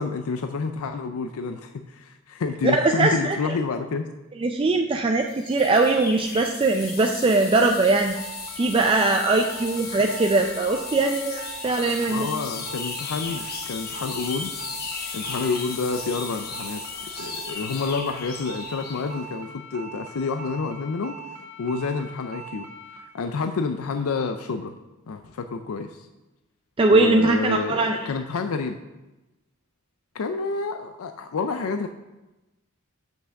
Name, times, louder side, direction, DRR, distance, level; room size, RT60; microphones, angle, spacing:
voice 1, 0.0-4.1 12.1-14.5 15.1-16.8 17.2-21.2 21.6-22.7 23.1-24.7 25.1-26.1 26.9-28.8 30.1-31.9, left 4 dB, 80° left, 7 dB, 0.4 m, -29 dB
voice 2, 2.6-3.5 4.4-8.1 8.6-12.3 26.8-28.0, right 3 dB, 25° right, 3 dB, 0.3 m, -21 dB
sound 1, 5.3-19.1, left 5 dB, 45° left, 1.0 m, -36 dB
sound 2, 8.2-23.0, right 3 dB, 80° right, 1.5 m, -41 dB
6.0 x 5.7 x 6.4 m, 1.0 s
head